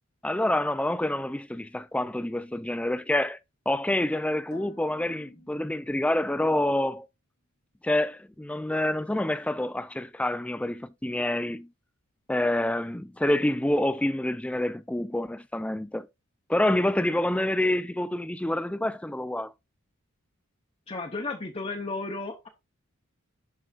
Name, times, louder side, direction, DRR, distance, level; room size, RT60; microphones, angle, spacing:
voice 1, 0.2-3.4 3.7-7.1 7.8-11.7 12.3-16.1 16.5-19.5, left 1 dB, 5° left, 0.3 m, -27 dB
sound 1, 4.5-6.5, equal, 90° left, 1.7 m, -53 dB
voice 2, 20.9-22.5, left 3 dB, 25° left, 0.8 m, -33 dB
11.5 x 4.6 x 2.4 m
head